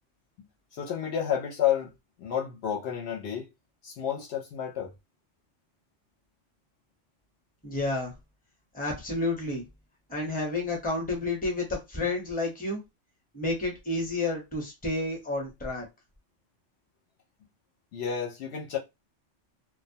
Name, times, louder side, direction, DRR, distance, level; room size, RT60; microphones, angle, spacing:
voice 1, 0.7-1.9 2.2-3.5 3.8-4.9 17.9-18.8, left 9 dB, 70° left, 0.8 m, -30 dB
voice 2, 7.6-8.1 8.7-9.6 10.1-12.8 13.3-15.8, left 2 dB, 10° left, 0.7 m, -30 dB
2.1 x 2.1 x 2.7 m
omnidirectional pair, 1.3 m